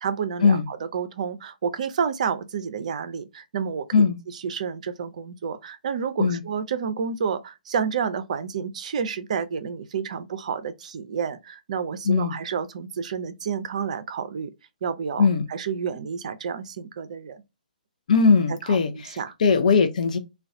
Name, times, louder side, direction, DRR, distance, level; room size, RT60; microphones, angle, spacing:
voice 1, 0.0-4.0 4.4-14.5 14.8-17.4 18.7-19.3, right 6 dB, 50° right, 0.4 m, -30 dB
voice 2, 18.1-20.2, left 5 dB, 55° left, 0.4 m, -20 dB
2.3 x 2.2 x 2.5 m
figure-of-eight pair, 130°, 5 cm